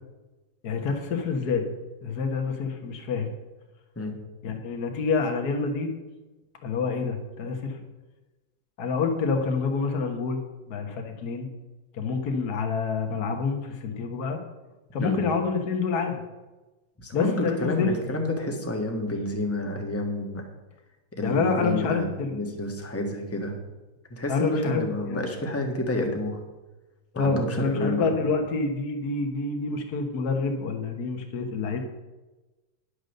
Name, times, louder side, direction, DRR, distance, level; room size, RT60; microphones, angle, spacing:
voice 1, 0.6-1.7 2.0-3.3 4.4-5.9 6.6-7.8 8.8-10.4 10.7-11.5 11.9-14.4 14.9-16.2 17.1-17.9 21.2-22.4 24.3-25.3 27.1-31.8, left 4 dB, 55° left, 4 dB, 1.7 m, -27 dB
voice 2, 17.0-20.4 21.1-22.1 22.3-23.6 24.1-26.4 27.1-28.1, left 1 dB, 10° left, 2 dB, 1.2 m, -29 dB
11.0 x 6.6 x 6.5 m, 1.1 s
omnidirectional pair, 2.2 m